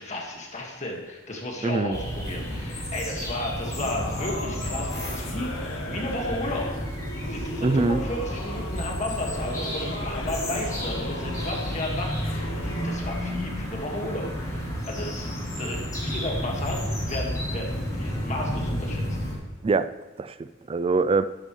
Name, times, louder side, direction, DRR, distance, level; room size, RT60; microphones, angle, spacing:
voice 1, 0.0-6.7 7.2-19.0, left 1 dB, 35° left, 0 dB, 1.8 m, -33 dB
voice 2, 1.6-2.0 7.2-7.3 7.6-8.0 19.6-19.9 20.2-21.2, right 3 dB, 30° right, 14 dB, 0.3 m, -24 dB
sound 1, 1.9-19.3, equal, 20° left, 3.7 m, -31 dB
Singing / Musical instrument, 3.6-13.0, left 1 dB, 75° left, 1.8 m, -38 dB
sound 2, 4.4-6.8, right 2 dB, 80° right, 3.4 m, -47 dB
13.0 x 10.5 x 3.2 m, 1.3 s
head